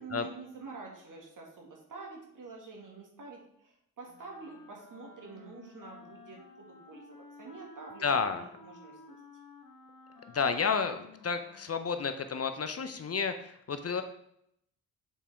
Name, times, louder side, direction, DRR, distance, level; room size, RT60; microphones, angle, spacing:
voice 1, 0.0-9.2, right 4 dB, 60° right, -1 dB, 2.0 m, -47 dB
Wind instrument woodwind instrument, 4.1-12.7, left 3 dB, 65° left, 1.4 m, -54 dB
voice 2, 8.0-8.4 10.3-14.0, left 5 dB, 40° left, 9 dB, 0.6 m, -31 dB
7.3 x 4.2 x 3.5 m, 0.74 s
supercardioid pair, 50°, 36 cm